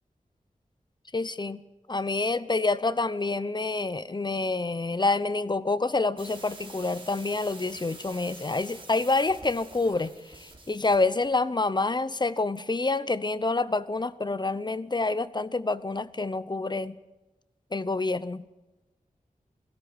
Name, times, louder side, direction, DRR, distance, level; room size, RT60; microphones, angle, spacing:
voice 1, 1.1-1.6 1.9-10.1 10.7-16.9 17.7-18.4, left 3 dB, 30° left, 15 dB, 0.8 m, -27 dB
sound 1, 6.2-11.3, right 2 dB, 40° right, 4.9 m, -47 dB
21.0 x 17.0 x 9.2 m, 1.1 s
wide cardioid pair, 90°, 14 cm